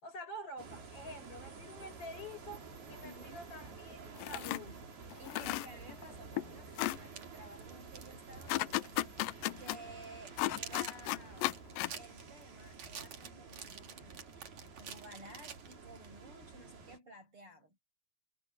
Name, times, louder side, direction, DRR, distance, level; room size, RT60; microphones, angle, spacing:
voice 1, 0.0-4.9, equal, 40° left, 7.7 m, -48 dB
sound 1, 0.6-17.0, right 4 dB, 85° right, 7.6 m, -51 dB
voice 2, 3.0-3.5 5.2-9.2 9.6-11.5 11.9-17.8, right 1 dB, 35° right, 8.2 m, -54 dB
sound 2, 4.2-4.6 5.1-6.0 6.4-6.5 6.8-7.0 8.5-9.8 10.4-12.0, left 18 dB, 80° left, 2.0 m, -34 dB
sound 3, 7.0-9.2 9.5-9.6 10.0-16.1, right 7 dB, 50° right, 3.2 m, -49 dB
omnidirectional pair, 4.3 m